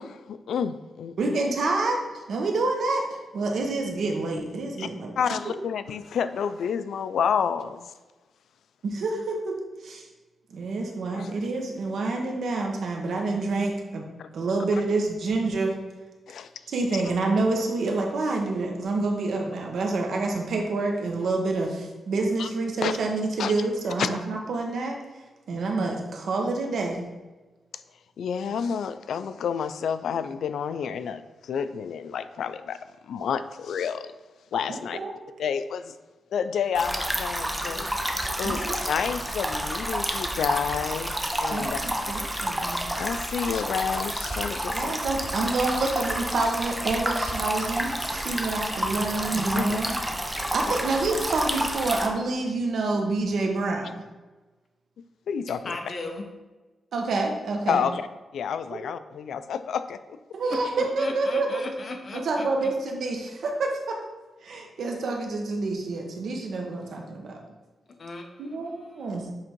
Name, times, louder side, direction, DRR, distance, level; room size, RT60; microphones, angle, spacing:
voice 1, 0.0-1.4 4.8-4.9 5.2-7.9 11.1-11.3 14.2-14.3 16.3-16.5 22.4-22.5 22.8-23.0 23.4-23.5 24.0-24.2 25.5-25.6 28.2-32.8 33.1-34.1 34.5-35.0 35.4-35.9 36.3-37.9 38.4-41.1 41.4-41.8 43.0-45.0 49.5-49.8 55.3-55.8 57.7-58.1 58.3-60.0, left 7 dB, 85° left, 12 dB, 0.3 m, -29 dB
voice 2, 1.2-5.1 8.8-9.5 9.8-10.0 10.5-14.0 14.3-15.7 16.7-25.0 25.5-27.0 34.7-35.4 38.4-38.8 41.5-42.9 44.7-49.9 50.5-53.9 56.9-57.8 60.3-61.7 62.1-64.0 64.4-67.4 68.4-69.3, right 3 dB, 75° right, 1 dB, 1.1 m, -28 dB
sound 1, 36.7-52.1, equal, 5° right, 0.7 m, -29 dB
voice 3, 55.6-56.3 60.5-60.6 61.0-62.5 68.0-68.3, left 3 dB, 45° left, 3 dB, 0.9 m, -36 dB
7.6 x 3.6 x 4.5 m, 1.2 s
wide cardioid pair, 125°, 0 cm